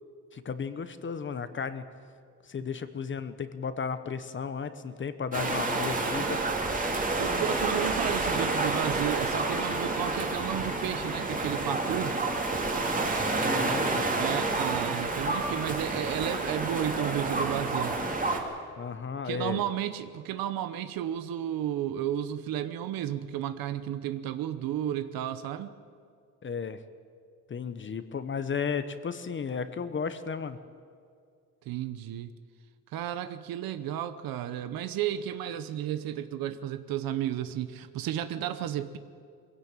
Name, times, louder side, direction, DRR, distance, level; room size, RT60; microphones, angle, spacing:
voice 1, 0.3-1.8 2.4-6.4 13.3-14.2 18.8-19.6 26.4-26.8 27.5-30.6, left 6 dB, 35° left, 11 dB, 1.1 m, -34 dB
sound 1, 5.3-18.4, right 3 dB, 25° right, 2.7 m, -29 dB
voice 2, 7.2-12.2 14.2-18.0 19.2-25.8 31.7-32.3 32.9-39.0, right 11 dB, 90° right, 11 dB, 1.0 m, -33 dB
21.5 x 16.5 x 9.0 m, 2.2 s
cardioid pair, 125°, 34 cm